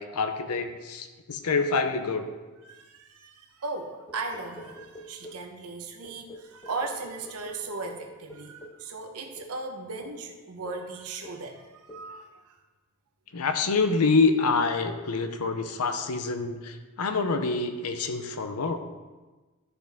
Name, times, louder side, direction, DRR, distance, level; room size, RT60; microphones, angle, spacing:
voice 1, 0.0-2.3 13.3-18.8, left 4 dB, 85° left, 8 dB, 0.7 m, -26 dB
voice 2, 2.6-12.6, right 3 dB, 85° right, 2 dB, 1.0 m, -37 dB
sound 1, 4.1-5.5 6.0-8.9 9.4-9.6 10.0-10.3 10.6-10.9 11.2-11.5 11.9-12.1, left 1 dB, 20° left, 0.5 m, -46 dB
11.0 x 6.1 x 3.5 m, 1.2 s
head